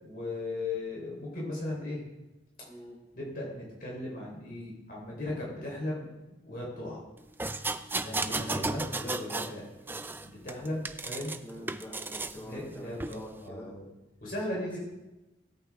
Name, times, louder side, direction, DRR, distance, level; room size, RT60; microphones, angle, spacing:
voice 1, 0.0-2.0 3.1-7.0 8.0-9.7 10.2-11.6 12.3-13.8 14.2-14.8, left 2 dB, 50° left, -4 dB, 4.3 m, -37 dB
voice 2, 2.7-3.0 6.7-7.0 8.1-8.6 11.4-13.7 14.6-14.7, equal, 10° left, -7 dB, 5.0 m, -46 dB
sound 1, 7.4-9.6 9.9-11.4 11.7-12.4 13.0-13.2, right 2 dB, 10° right, 0.4 m, -34 dB
20.0 x 8.5 x 3.7 m, 1.0 s
head